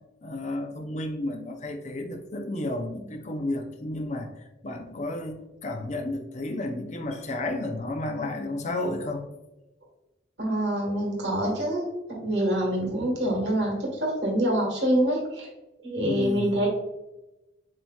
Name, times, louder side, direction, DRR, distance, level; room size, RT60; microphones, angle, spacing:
voice 1, 0.2-9.3 16.0-16.5, left 1 dB, 40° left, 4 dB, 0.5 m, -32 dB
voice 2, 10.4-15.5 15.8-16.7, right 1 dB, 65° right, -2 dB, 1.4 m, -26 dB
7.4 x 2.9 x 2.3 m, 1.0 s
head